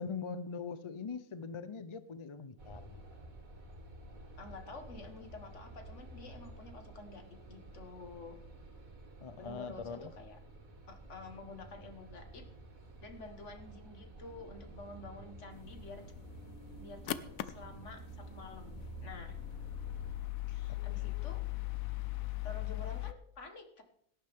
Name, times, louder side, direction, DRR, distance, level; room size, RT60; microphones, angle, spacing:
voice 1, 0.0-3.0 9.2-10.1 20.9-21.2, left 5 dB, 45° left, 14 dB, 0.4 m, -42 dB
sound 1, 2.6-20.1, right 2 dB, 80° right, 2.6 m, -51 dB
voice 2, 4.4-8.4 9.4-10.4 10.9-12.5 13.0-16.0 16.8-17.1 17.5-19.4 20.5-21.4 22.4-23.8, left 3 dB, 60° left, 6 dB, 1.9 m, -49 dB
sound 2, 15.5-23.1, left 16 dB, 85° left, 1.1 m, -40 dB
17.5 x 10.5 x 3.6 m, 0.66 s
omnidirectional pair, 1.4 m